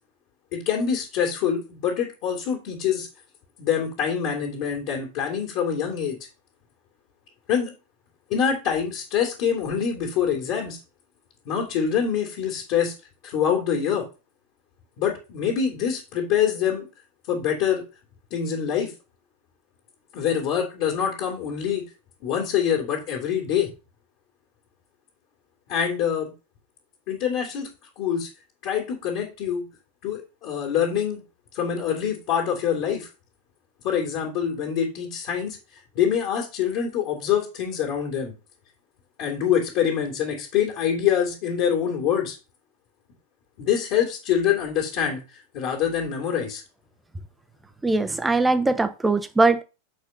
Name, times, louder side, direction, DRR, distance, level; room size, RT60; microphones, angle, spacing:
voice 1, 0.5-3.1 3.6-6.2 7.5-7.7 8.3-10.8 11.5-12.9 13.2-14.0 15.0-16.9 17.3-17.8 18.3-18.9 20.1-21.8 22.2-23.7 25.7-26.3 27.1-27.7 28.0-28.3 28.6-29.6 30.0-31.2 31.5-33.1 33.8-35.6 36.0-38.3 39.2-42.4 43.6-45.2 45.5-46.6, left 8 dB, 45° left, 2.2 m, -25 dB
voice 2, 47.8-49.6, right 3 dB, 10° right, 0.8 m, -21 dB
6.8 x 4.5 x 5.4 m
figure-of-eight pair, 90°, 0 cm